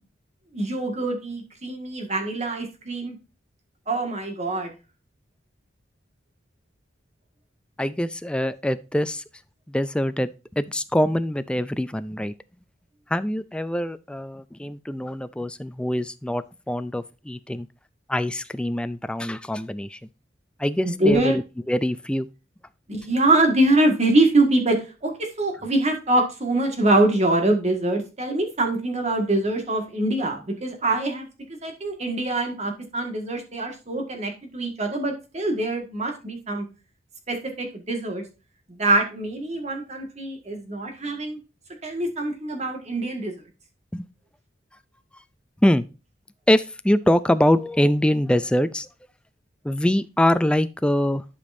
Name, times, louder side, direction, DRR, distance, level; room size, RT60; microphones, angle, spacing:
voice 1, 0.5-3.2 3.9-4.7 20.8-21.3 22.9-31.3 31.6-36.6 37.3-38.2 38.8-41.4 41.8-43.3, right 2 dB, 35° right, 1.7 m, -24 dB
voice 2, 7.8-9.2 9.7-10.3 10.6-12.3 13.1-17.7 18.1-20.0 20.6-22.3 43.9-44.1 45.6-45.8 46.5-48.9 49.6-51.2, left 1 dB, 5° left, 0.4 m, -23 dB
11.5 x 5.1 x 2.6 m
head